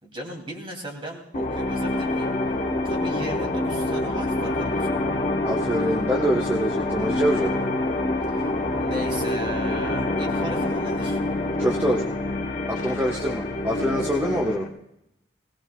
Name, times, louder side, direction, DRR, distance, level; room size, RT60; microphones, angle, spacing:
voice 1, 0.0-2.3 2.8-5.0 8.3-8.4 8.8-11.2, right 1 dB, 30° right, 1 dB, 2.9 m, -36 dB
sound 1, 1.3-14.7, left 2 dB, 45° left, 1.4 m, -26 dB
voice 2, 5.4-7.5 11.6-12.0 12.7-14.7, equal, 15° right, -1 dB, 1.3 m, -25 dB
20.5 x 18.0 x 2.4 m, 0.85 s
head